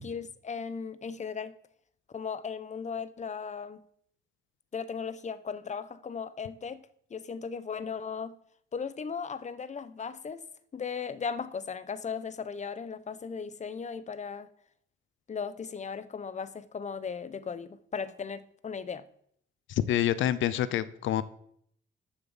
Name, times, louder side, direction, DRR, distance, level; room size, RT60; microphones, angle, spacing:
voice 1, 0.0-1.5 2.1-3.8 4.7-8.4 8.7-10.5 10.7-14.5 15.3-19.0, left 6 dB, 35° left, 1.0 m, -37 dB
voice 2, 19.7-21.2, left 11 dB, 80° left, 0.8 m, -27 dB
11.0 x 7.2 x 7.2 m
cardioid pair, 90°, 20 cm